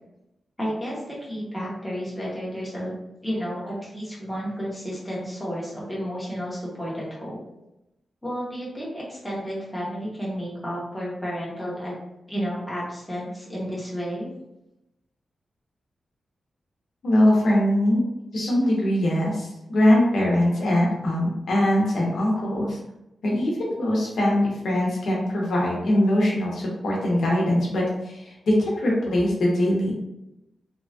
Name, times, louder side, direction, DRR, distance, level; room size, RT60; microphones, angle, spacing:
voice 1, 0.6-2.9 3.2-7.4 8.2-11.9 12.3-14.3, equal, 5° left, -7 dB, 0.8 m, -31 dB
voice 2, 17.0-18.0 18.3-22.8 23.2-29.9, left 1 dB, 70° left, -3 dB, 0.7 m, -22 dB
2.9 x 2.2 x 2.6 m, 0.90 s
wide cardioid pair, 175°, 0 cm